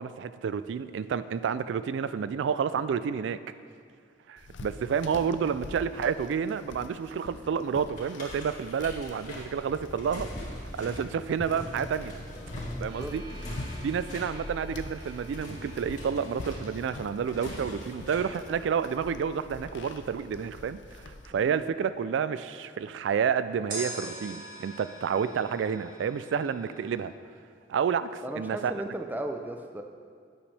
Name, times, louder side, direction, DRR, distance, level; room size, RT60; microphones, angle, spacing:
voice 1, 0.0-3.4 4.3-12.2 12.8-13.2 13.8-27.1 27.7-28.7, right 7 dB, 80° right, 14 dB, 0.3 m, -30 dB
sound 1, 4.4-21.3, left 2 dB, 85° left, 0.6 m, -44 dB
sound 2, 8.0-18.4, left 1 dB, 45° left, 2.0 m, -42 dB
voice 2, 12.6-13.1 21.3-21.7 28.2-29.8, right 1 dB, 10° right, 5 dB, 0.4 m, -36 dB
sound 3, 12.9-20.8 23.7-27.0, right 1 dB, 50° right, 2.0 m, -46 dB
10.5 x 8.8 x 3.3 m, 2.2 s
head